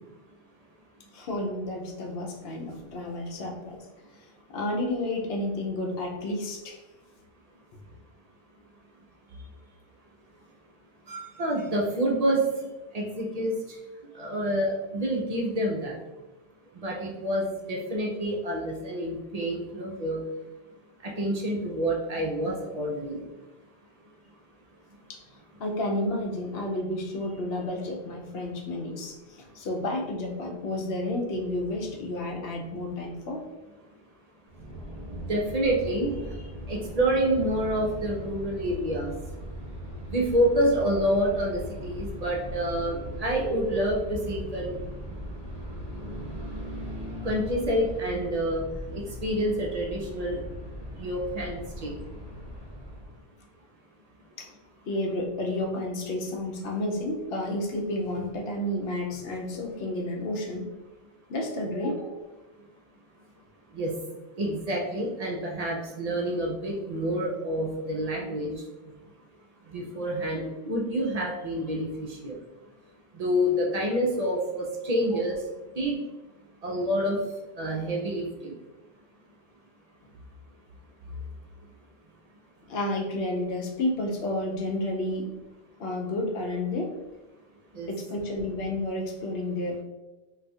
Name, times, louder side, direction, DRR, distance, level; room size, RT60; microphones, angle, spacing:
voice 1, 1.1-3.8 4.5-6.8 11.8-11.9 25.1-25.2 25.6-33.4 54.4-54.5 54.9-60.7 61.3-62.2 75.1-75.2 82.7-85.3 85.8-86.9 87.9-89.8, left 1 dB, 70° left, 0 dB, 0.8 m, -31 dB
voice 2, 11.1-12.5 12.9-13.5 14.1-16.0 16.8-20.2 21.0-23.2 35.1-36.3 36.7-39.1 40.1-44.8 47.2-50.4 50.9-51.9 63.7-63.9 64.4-68.5 69.7-72.4 73.1-75.4 75.8-76.0 76.6-77.2 77.6-78.6 87.7-87.9, equal, 50° right, -2 dB, 0.5 m, -28 dB
sound 1, 34.5-53.2, equal, 25° right, 1.0 m, -39 dB
2.4 x 2.3 x 4.0 m, 1.1 s
omnidirectional pair, 1.1 m